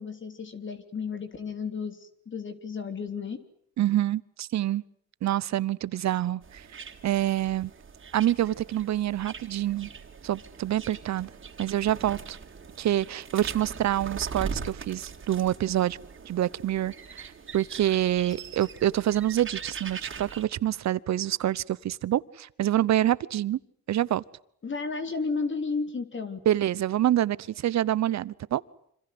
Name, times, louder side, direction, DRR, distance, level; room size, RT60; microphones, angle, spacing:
voice 1, 0.0-3.4 24.6-26.4, left 4 dB, 40° left, 8 dB, 3.5 m, -33 dB
voice 2, 3.8-4.8 5.2-6.7 7.0-7.7 8.1-9.9 10.2-11.3 11.6-12.4 12.8-16.0 16.2-17.3 17.5-23.6 23.9-24.2 26.4-28.6, right 12 dB, 65° right, 20 dB, 1.0 m, -26 dB
sound 1, 6.4-20.4, right 5 dB, 40° right, 3.8 m, -41 dB
26.5 x 26.5 x 7.9 m, 0.69 s
cardioid pair, 90°, 30 cm